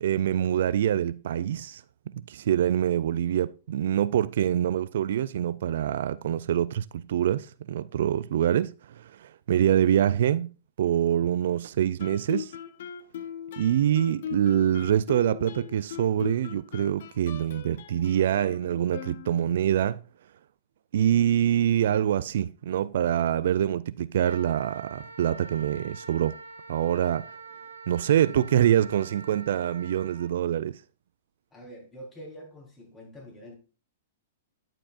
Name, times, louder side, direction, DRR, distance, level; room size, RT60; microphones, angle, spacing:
voice 1, 0.0-1.8 2.3-10.5 10.8-12.5 13.6-20.0 20.9-26.4 26.7-27.3 27.9-30.8, right 10 dB, 65° right, 0.3 m, -25 dB
Guitar, 12.0-19.7, left 9 dB, 60° left, 0.7 m, -40 dB
Wind instrument woodwind instrument, 24.2-30.3, right 4 dB, 85° right, 1.8 m, -45 dB
voice 2, 31.5-33.5, equal, 20° left, 3.8 m, -45 dB
10.5 x 7.5 x 2.5 m
hypercardioid pair, 115°, 0 cm